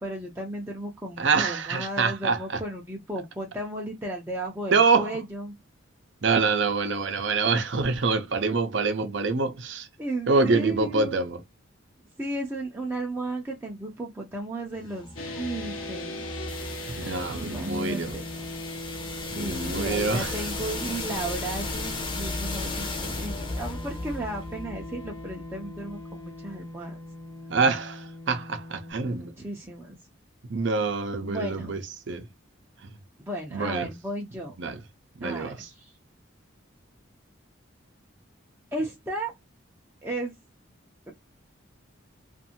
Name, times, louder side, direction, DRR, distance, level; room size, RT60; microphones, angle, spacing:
voice 1, 0.0-5.5 10.0-11.2 12.2-15.1 15.4-16.2 17.4-18.3 19.3-27.0 29.0-30.0 31.2-31.8 33.3-34.6 35.2-35.9 38.7-39.3 40.0-40.3 41.1-41.2, right 1 dB, 10° right, 0.6 m, -34 dB
voice 2, 1.2-2.6 4.7-5.2 6.2-9.9 10.3-11.4 17.0-18.1 19.3-20.4 27.5-29.3 30.5-32.3 32.8-33.0 33.5-33.9 34.6-34.8 35.2-35.7, right 4 dB, 60° right, 0.6 m, -26 dB
sound 1, 14.7-26.6, left 2 dB, 25° left, 0.8 m, -36 dB
sound 2, 15.2-28.9, left 1 dB, 85° left, 0.9 m, -40 dB
2.6 x 2.5 x 2.7 m
head